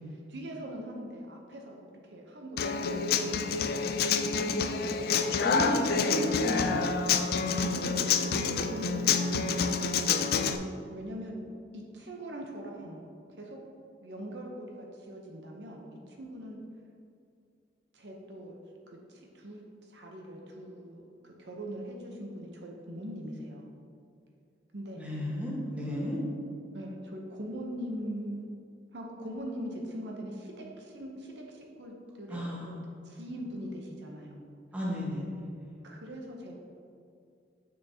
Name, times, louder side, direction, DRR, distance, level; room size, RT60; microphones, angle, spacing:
voice 1, 0.3-3.6 7.7-9.8 10.9-11.4 11.7-13.0 13.4-13.6 14.0-16.6 17.9-18.6 18.9-23.7 24.7-25.0 26.7-28.5 28.9-32.8 33.0-34.5 35.8-36.6, equal, 70° right, 0 dB, 0.8 m, -41 dB
Human voice / Acoustic guitar, 2.6-10.6, left 5 dB, 60° left, 0.4 m, -28 dB
voice 2, 4.9-7.6 25.0-26.2 32.3-33.2 34.7-35.8, equal, 10° right, -6 dB, 1.4 m, -35 dB
7.0 x 6.2 x 2.8 m, 2.5 s
head